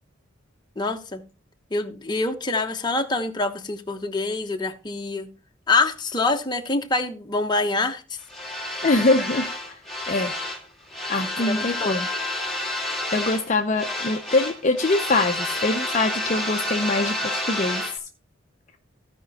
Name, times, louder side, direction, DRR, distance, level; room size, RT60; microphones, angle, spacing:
voice 1, 0.8-1.2 1.7-5.3 5.7-8.0 11.4-12.0, left 3 dB, 20° left, 1.0 m, -25 dB
sound 1, 8.3-10.6 10.9-13.5 13.7-18.0, left 1 dB, ahead, 2.2 m, -29 dB
voice 2, 8.8-9.5 10.1-10.3 11.1-12.1 13.1-17.8, left 2 dB, 35° left, 0.6 m, -23 dB
15.5 x 5.2 x 4.1 m
head